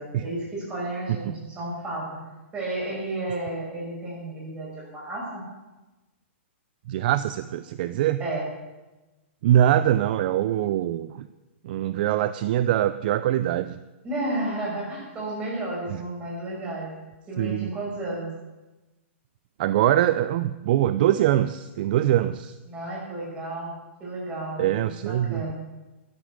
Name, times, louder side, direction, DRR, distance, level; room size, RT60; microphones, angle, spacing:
voice 1, 0.0-2.2 2.5-5.4 8.2-8.4 14.0-16.9 17.3-18.3 22.7-23.7 24.0-25.5, right 2 dB, 15° right, -4 dB, 6.5 m, -32 dB
voice 2, 6.9-8.2 9.4-11.3 11.6-13.8 17.4-17.7 19.6-22.5 24.6-25.4, right 12 dB, 45° right, 14 dB, 0.5 m, -23 dB
12.5 x 10.5 x 8.2 m, 1.1 s
hypercardioid pair, 155°, 7 cm